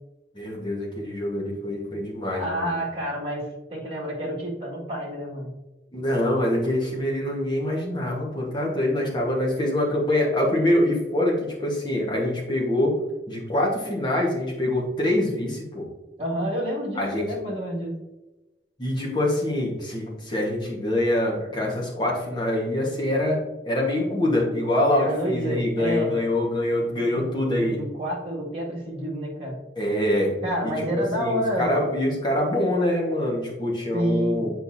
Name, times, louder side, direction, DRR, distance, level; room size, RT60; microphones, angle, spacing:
voice 1, 0.3-2.7 5.9-13.0 13.3-15.9 16.9-17.3 18.8-27.8 29.8-30.3 30.6-34.5, left 1 dB, 25° left, -3 dB, 1.4 m, -25 dB
voice 2, 2.3-5.5 16.2-18.0 24.9-26.2 27.1-29.6 30.4-31.9 33.9-34.5, equal, 30° right, -5 dB, 1.9 m, -29 dB
7.7 x 4.6 x 2.7 m, 1.1 s
head